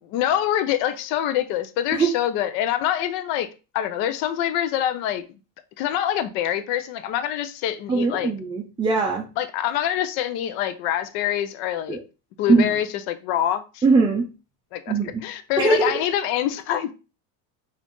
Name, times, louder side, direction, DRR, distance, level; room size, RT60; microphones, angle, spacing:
voice 1, 0.1-3.5 3.7-5.2 5.8-8.3 9.4-12.0 12.4-13.8 14.7-14.9 15.2-16.9, left 11 dB, 65° left, 0.7 m, -25 dB
voice 2, 7.9-9.3 11.9-12.0 12.5-12.7 13.8-14.2 14.9-15.2 15.6-15.9, right 3 dB, 10° right, 0.4 m, -20 dB
4.1 x 2.7 x 3.0 m
supercardioid pair, 110°, 47 cm